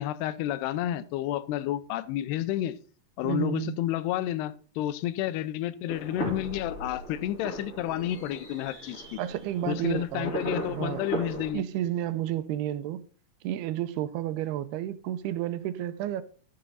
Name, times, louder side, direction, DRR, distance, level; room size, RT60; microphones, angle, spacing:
voice 1, 0.0-2.8 3.2-9.2 9.7-11.6, left 13 dB, 90° left, 2.7 m, -30 dB
voice 2, 3.2-3.8 9.2-10.4 10.6-11.0 11.5-13.0 13.4-16.2, right 12 dB, 85° right, 2.6 m, -31 dB
sound 1, 5.9-11.5, right 1 dB, 20° left, 3.1 m, -37 dB
13.5 x 6.9 x 4.0 m
omnidirectional pair, 4.7 m